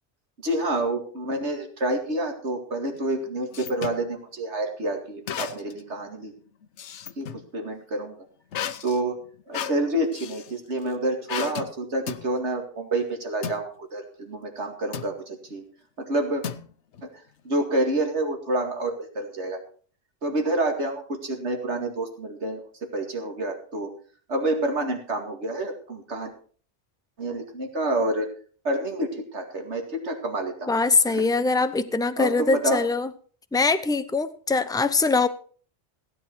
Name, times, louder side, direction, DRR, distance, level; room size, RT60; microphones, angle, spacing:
voice 1, 0.4-6.3 7.2-8.2 8.8-9.2 9.5-15.6 16.0-16.4 17.0-17.1 17.4-19.6 20.2-23.9 24.3-26.3 27.2-28.3 28.6-30.7 31.1-31.3 32.2-32.8, right 1 dB, 80° right, 4 dB, 2.5 m, -28 dB
sound 1, 2.9-4.0 5.3-5.9 6.2-7.5 8.5-10.5 11.3-11.7 12.1-12.3 13.4-13.6 14.9-15.2 16.4-17.0, left 8 dB, 85° left, 1.1 m, -34 dB
voice 2, 30.7-33.1 33.5-35.3, left 3 dB, 5° left, 12 dB, 0.5 m, -22 dB
16.0 x 9.5 x 4.6 m, 0.43 s
omnidirectional pair, 1.2 m